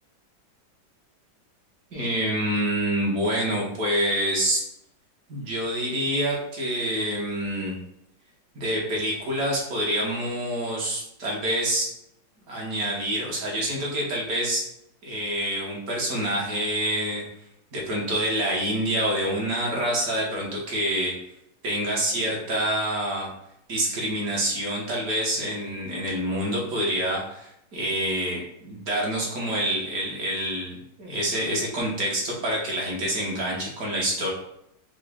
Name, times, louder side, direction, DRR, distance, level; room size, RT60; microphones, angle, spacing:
voice 1, 1.9-4.6 5.3-7.7 8.5-11.9 12.5-14.7 15.0-17.2 17.7-21.2 21.6-23.3 23.7-34.3, right 1 dB, 55° right, -3 dB, 1.5 m, -27 dB
5.7 x 2.1 x 3.4 m, 0.78 s
omnidirectional pair, 1.9 m